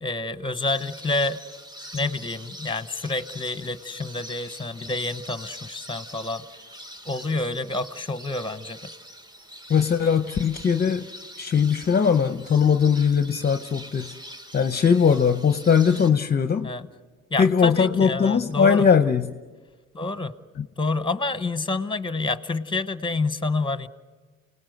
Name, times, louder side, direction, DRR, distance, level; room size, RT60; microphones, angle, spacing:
voice 1, 0.0-1.4 1.9-6.4 7.0-8.8 16.6-16.9 17.3-18.9 19.9-20.3 20.8-23.9, left 3 dB, 15° left, 13 dB, 1.0 m, -28 dB
sound 1, 0.6-16.1, equal, 15° right, 1.2 m, -43 dB
voice 2, 9.7-11.1 11.4-14.2 14.5-16.7 17.4-19.3 20.6-20.7, left 6 dB, 30° left, 10 dB, 0.7 m, -20 dB
29.0 x 19.0 x 7.9 m, 1.3 s
cardioid pair, 90°, 30 cm